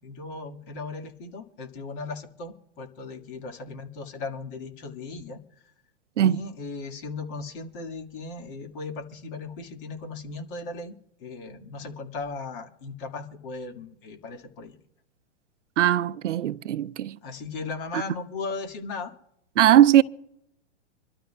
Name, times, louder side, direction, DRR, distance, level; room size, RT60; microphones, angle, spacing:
voice 1, 0.0-5.4 6.2-10.9 11.2-14.8 17.2-19.1, left 4 dB, 45° left, 1.9 m, -37 dB
voice 2, 15.8-17.2 19.6-20.0, right 11 dB, 80° right, 0.6 m, -19 dB
26.5 x 12.5 x 2.3 m
hypercardioid pair, 120°, 36 cm